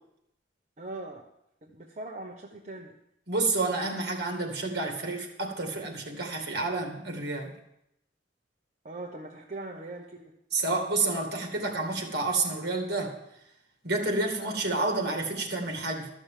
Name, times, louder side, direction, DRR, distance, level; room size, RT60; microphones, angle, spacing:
voice 1, 0.8-1.3 1.6-3.0 8.8-10.4, right 2 dB, 40° right, 0 dB, 0.9 m, -41 dB
voice 2, 3.3-7.5 10.5-13.2 13.8-16.1, right 3 dB, 60° right, 3 dB, 2.4 m, -29 dB
13.0 x 6.4 x 7.4 m, 0.80 s
head